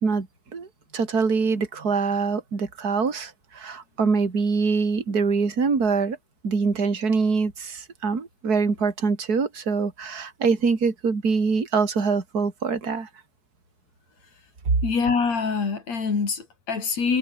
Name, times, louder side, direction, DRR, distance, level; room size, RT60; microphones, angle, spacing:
voice 1, 0.9-6.2 6.4-13.1 14.6-14.7, right 4 dB, 25° right, 3.1 m, -24 dB
voice 2, 14.8-17.2, left 5 dB, 35° left, 5.1 m, -25 dB
omnidirectional pair, 5.4 m